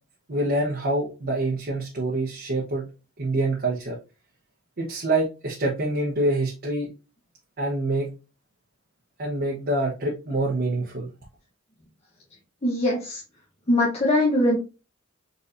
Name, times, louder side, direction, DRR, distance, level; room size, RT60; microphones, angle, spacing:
voice 1, 0.3-2.9 3.2-4.0 4.8-6.9 7.6-8.1 9.2-11.1, right 2 dB, 45° right, -3 dB, 0.9 m, -26 dB
voice 2, 12.6-13.2 13.7-14.6, left 1 dB, 30° left, -4 dB, 0.9 m, -21 dB
4.2 x 4.0 x 2.5 m, 0.30 s
head